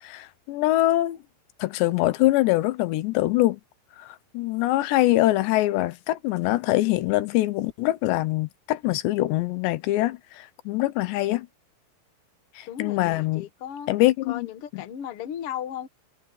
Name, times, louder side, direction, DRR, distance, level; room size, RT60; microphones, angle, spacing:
voice 1, 0.0-1.2 1.6-3.6 4.0-11.5 12.6-13.5 13.9-14.5 14.7-14.8, left 17 dB, 85° left, 3.2 m, -24 dB
voice 2, 12.7-13.9 14.3-15.9, left 10 dB, 65° left, 1.4 m, -35 dB
omnidirectional pair, 4.9 m